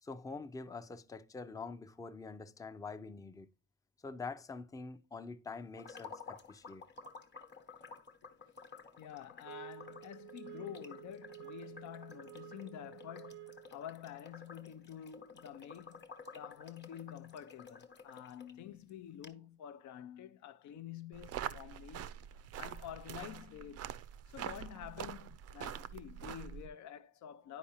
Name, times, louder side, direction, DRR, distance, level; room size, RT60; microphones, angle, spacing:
voice 1, 0.0-3.5 4.0-6.8, left 4 dB, 10° left, 0.4 m, -45 dB
sound 1, 5.8-18.5 18.9-19.0 19.2-19.3, left 4 dB, 35° left, 1.0 m, -53 dB
voice 2, 9.0-22.1 22.6-23.9 24.3-27.6, left 10 dB, 70° left, 0.5 m, -49 dB
sound 2, 9.4-13.8, right 17 dB, 90° right, 0.7 m, -51 dB
sound 3, 21.1-26.7, right 9 dB, 55° right, 0.4 m, -44 dB
9.8 x 4.7 x 2.9 m
cardioid pair, 90°, 30 cm